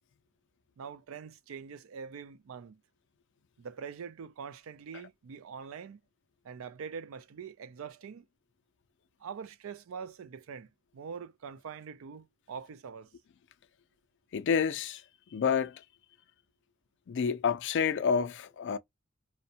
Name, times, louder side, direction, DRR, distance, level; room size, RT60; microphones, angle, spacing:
voice 1, 0.8-2.8 3.6-6.0 6.4-8.3 9.2-13.1, right 6 dB, 75° right, 0.4 m, -44 dB
voice 2, 14.3-15.0 15.3-15.8 17.1-18.8, left 6 dB, 60° left, 0.4 m, -29 dB
2.5 x 2.1 x 2.7 m
head